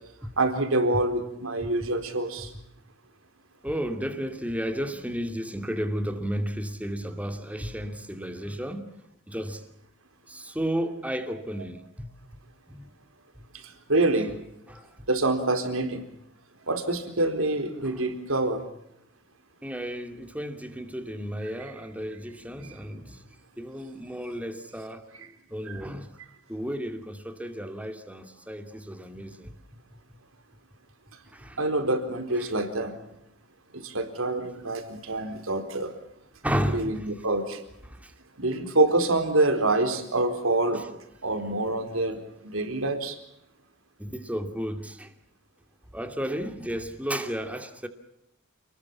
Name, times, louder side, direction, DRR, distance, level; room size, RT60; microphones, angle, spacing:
voice 1, 0.4-2.5 13.9-14.3 15.1-16.0 16.7-18.6 31.6-32.9 33.8-35.9 36.7-37.6 38.4-40.8 41.2-42.2 42.4-43.1, right 2 dB, 75° right, 4.2 m, -26 dB
voice 2, 1.6-1.9 2.4-2.5 3.6-8.9 9.3-9.7 10.3-12.1 12.7-12.9 13.4-13.5 14.7-14.9 17.8-18.1 19.6-23.2 23.6-26.2 26.5-29.6 31.3-31.6 32.4-32.5 36.4-37.2 37.8-38.1 40.7-40.9 44.0-45.1 45.9-47.9, equal, 5° right, 2.6 m, -33 dB
29.0 x 20.5 x 7.3 m
head